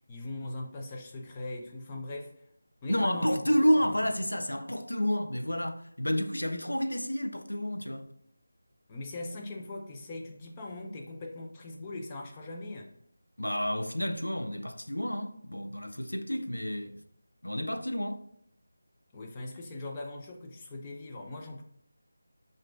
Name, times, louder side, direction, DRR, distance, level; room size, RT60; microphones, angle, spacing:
voice 1, 0.1-2.3 2.8-4.1 8.9-12.9 19.1-21.6, left 2 dB, 20° left, 0.5 m, -40 dB
voice 2, 2.9-8.1 13.4-17.0 17.4-18.2, equal, 85° left, 0.5 m, -30 dB
7.2 x 2.5 x 2.5 m
figure-of-eight pair, 165°, 0 cm